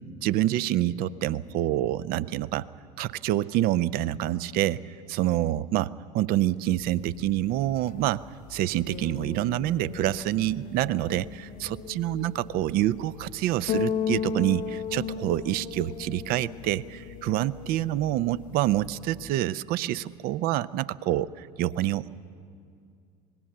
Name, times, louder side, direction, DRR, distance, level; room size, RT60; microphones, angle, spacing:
voice 1, 0.2-2.7 3.0-4.8 5.1-8.2 8.5-22.1, right 14 dB, 45° right, 17 dB, 0.6 m, -27 dB
sound 1, 6.8-19.3, left 7 dB, 40° left, 1.1 m, -36 dB
26.0 x 20.0 x 6.7 m, 2.3 s
figure-of-eight pair, 75°, 21 cm